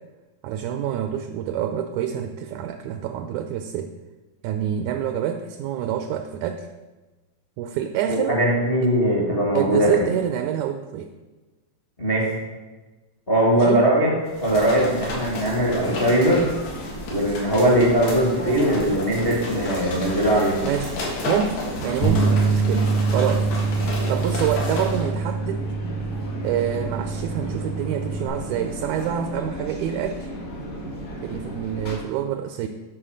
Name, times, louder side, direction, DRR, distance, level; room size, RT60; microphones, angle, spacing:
voice 1, 0.4-3.9 4.4-6.7 7.6-8.4 9.5-11.1 13.5-13.9 20.6-21.0 21.3-23.5 24.1-25.6 26.4-30.3 31.2-32.7, right 9 dB, 80° right, 7 dB, 1.7 m, -27 dB
voice 2, 8.1-10.1 12.0-12.3 13.3-14.1 14.4-16.4 17.1-20.6, right 1 dB, 35° left, -4 dB, 1.0 m, -20 dB
sound 1, 14.3-25.1, left 2 dB, 90° left, 3.5 m, -32 dB
sound 2, 16.4-32.0, equal, 50° left, 1.2 m, -35 dB
sound 3, 22.0-28.3, right 4 dB, 65° left, 2.2 m, -25 dB
10.0 x 4.3 x 6.3 m, 1.2 s
omnidirectional pair, 3.9 m